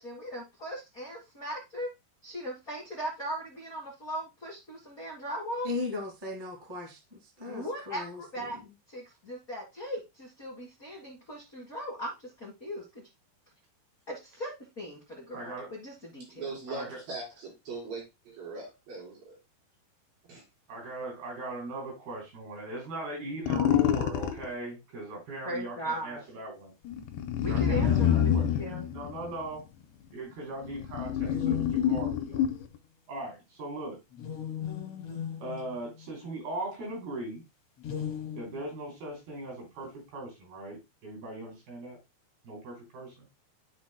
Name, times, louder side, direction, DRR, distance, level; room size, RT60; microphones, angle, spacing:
voice 1, 0.0-1.9 2.2-5.7 7.5-8.6 8.9-13.1 14.1-16.4 25.4-26.2 27.4-28.9, equal, 35° left, 1.4 m, -38 dB
voice 2, 5.6-7.0 7.4-8.2, left 3 dB, 15° right, 0.8 m, -36 dB
voice 3, 15.3-15.7 16.7-17.0 20.7-26.7 27.5-29.7 30.1-32.4 33.1-34.0 35.4-37.4 38.3-42.0 42.4-43.3, right 2 dB, 90° right, 5.3 m, -39 dB
voice 4, 16.3-19.4 20.3-20.4, right 3 dB, 70° right, 5.8 m, -40 dB
sound 1, 23.5-24.5 26.8-29.6 30.3-32.8, left 9 dB, 85° left, 2.6 m, -27 dB
sound 2, 27.3-29.6 31.2-32.4 34.1-36.4 37.8-38.9, left 8 dB, 65° left, 1.6 m, -38 dB
12.5 x 4.2 x 2.2 m
omnidirectional pair, 4.3 m